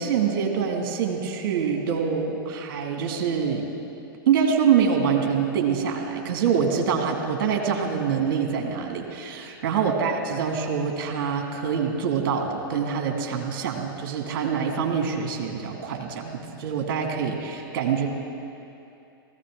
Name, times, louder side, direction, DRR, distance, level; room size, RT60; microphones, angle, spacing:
voice 1, 0.0-3.7 4.3-18.1, right 6 dB, 60° right, 3 dB, 2.0 m, -25 dB
18.5 x 15.0 x 3.6 m, 2.8 s
hypercardioid pair, 105°, 12 cm